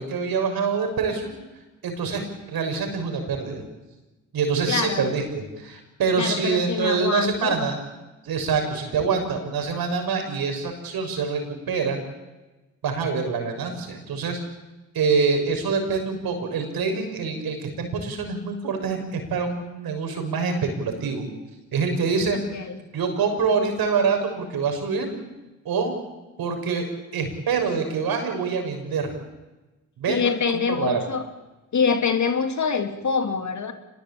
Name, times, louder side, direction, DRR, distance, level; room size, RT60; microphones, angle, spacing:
voice 1, 0.0-1.3 1.8-2.2 2.5-3.6 4.3-7.8 8.2-11.4 11.7-12.0 12.8-14.4 14.9-21.2 21.7-22.4 22.9-25.1 25.7-26.0 26.4-26.9 27.1-29.1 30.0-31.0, right 5 dB, 60° right, 5 dB, 6.9 m, -25 dB
voice 2, 4.7-5.1 6.2-7.6 22.5-22.8 30.1-31.2 31.7-33.7, left 6 dB, 45° left, 7 dB, 2.7 m, -25 dB
25.5 x 21.0 x 8.9 m, 1.1 s
hypercardioid pair, 50°, 40 cm